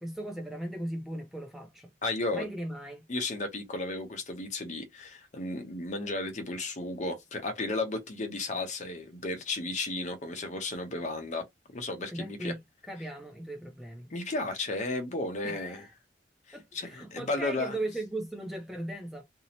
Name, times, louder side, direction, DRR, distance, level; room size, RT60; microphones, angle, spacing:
voice 1, 0.0-1.9 2.3-3.0 12.1-12.6 12.9-14.1 15.4-15.9 16.5-19.2, right 1 dB, ahead, 0.4 m, -38 dB
voice 2, 2.0-2.5 3.1-11.4 11.7-12.5 14.1-15.8 16.7-17.8, left 2 dB, 40° left, 0.7 m, -34 dB
2.6 x 2.0 x 2.7 m
head